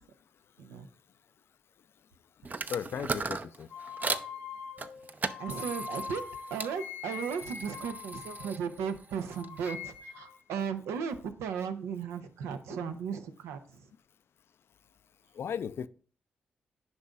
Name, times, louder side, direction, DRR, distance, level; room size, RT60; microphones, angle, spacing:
sound 1, 2.4-4.3 4.8-6.7 7.1-9.8, right 4 dB, 40° right, 0.5 m, -38 dB
voice 1, 2.7-3.7 12.8-13.0 15.3-15.9, left 7 dB, 65° left, 0.3 m, -36 dB
sound 2, 3.7-9.0 9.3-10.4, left 6 dB, 90° left, 1.2 m, -43 dB
voice 2, 5.4-13.9, right 7 dB, 85° right, 0.6 m, -36 dB
9.6 x 5.3 x 2.4 m
supercardioid pair, 45°, 4 cm